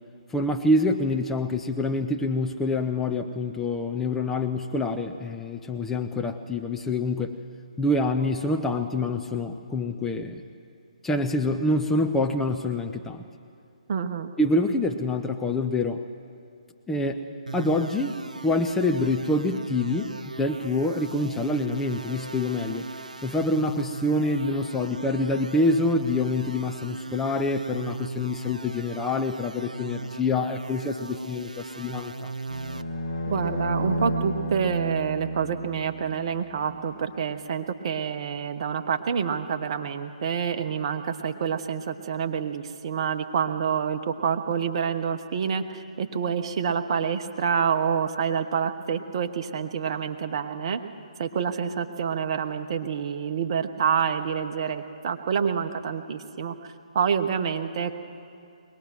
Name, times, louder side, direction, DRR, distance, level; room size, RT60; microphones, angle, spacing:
voice 1, 0.3-7.4 7.8-10.4 11.0-13.2 14.4-16.0 16.9-17.2 17.5-22.9 23.2-32.3, left 2 dB, 5° left, 4 dB, 0.6 m, -26 dB
voice 2, 13.9-14.3 33.3-50.8 51.2-56.5 56.9-57.9, right 7 dB, 45° right, 7 dB, 1.2 m, -27 dB
sound 1, 17.5-32.8, right 3 dB, 80° right, 0.9 m, -38 dB
sound 2, 32.5-36.8, equal, 35° left, 7.1 m, -32 dB
22.5 x 19.5 x 6.1 m, 2.5 s
figure-of-eight pair, 140°, 4 cm